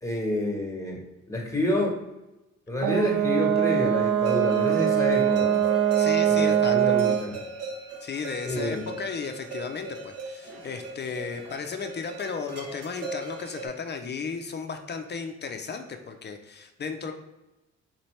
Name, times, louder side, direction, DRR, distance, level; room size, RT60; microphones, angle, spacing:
voice 1, 0.0-1.0 1.3-2.0 2.7-5.6 6.3-7.3 8.4-8.8, left 1 dB, 10° left, -1 dB, 1.2 m, -28 dB
Brass instrument, 2.8-7.3, right 10 dB, 70° right, 0.5 m, -23 dB
sound 1, 4.2-13.7, right 3 dB, 55° right, 0.9 m, -37 dB
voice 2, 6.0-7.0 8.0-17.1, left 5 dB, 35° left, 5 dB, 0.5 m, -34 dB
4.4 x 2.8 x 3.1 m, 0.98 s
cardioid pair, 90°, 30 cm